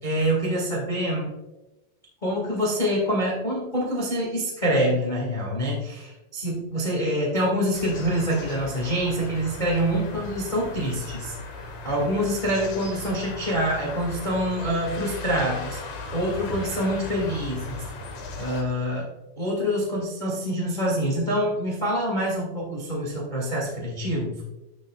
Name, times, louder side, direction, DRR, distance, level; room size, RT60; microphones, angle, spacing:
voice 1, 0.0-1.3 2.2-11.3 11.8-17.8 18.4-19.1 19.4-24.4, equal, 85° left, -4 dB, 0.4 m, -26 dB
sound 1, 7.7-18.6, left 2 dB, 60° left, 2.3 m, -37 dB
11.5 x 6.8 x 2.4 m, 1.0 s
omnidirectional pair, 5.0 m